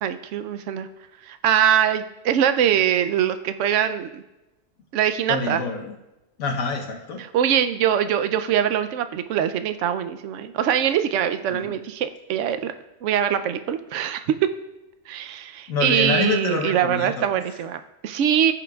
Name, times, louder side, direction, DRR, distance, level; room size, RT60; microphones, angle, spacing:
voice 1, 0.0-0.9 1.2-4.2 4.9-5.6 7.2-12.7 13.0-14.2 15.1-18.5, right 9 dB, 70° right, 11 dB, 0.9 m, -23 dB
voice 2, 5.3-5.9 6.4-7.2 11.5-11.7 15.7-17.3, left 4 dB, 85° left, 1 dB, 1.4 m, -26 dB
15.0 x 7.0 x 2.3 m, 0.98 s
omnidirectional pair, 1.4 m